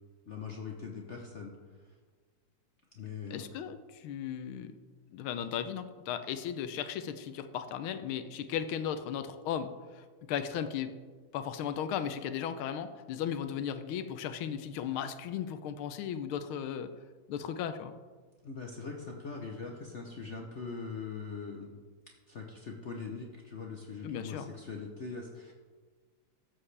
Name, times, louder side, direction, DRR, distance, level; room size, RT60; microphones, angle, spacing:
voice 1, 0.3-1.5 1.8-1.9 2.9-3.5 18.4-21.8 22.3-25.5, left 5 dB, 55° left, 1 dB, 0.8 m, -41 dB
voice 2, 3.3-4.8 5.1-10.9 11.3-16.9 17.3-17.9 24.0-24.5, left 8 dB, 90° left, 10 dB, 1.5 m, -36 dB
13.0 x 7.8 x 3.3 m, 1.5 s
omnidirectional pair, 2.2 m